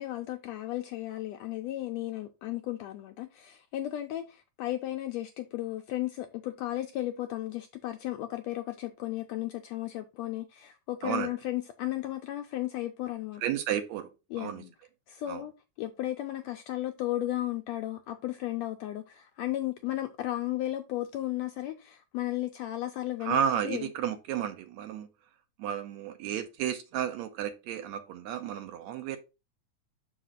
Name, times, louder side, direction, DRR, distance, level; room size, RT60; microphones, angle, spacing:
voice 1, 0.0-13.4 14.3-14.7 15.1-15.5 15.8-23.4 23.6-23.9, left 14 dB, 85° left, 1.5 m, -34 dB
voice 2, 13.4-14.1 14.4-14.6 15.3-15.4 23.2-25.1 25.6-29.2, right 9 dB, 75° right, 1.8 m, -32 dB
6.1 x 5.0 x 3.7 m
omnidirectional pair, 3.6 m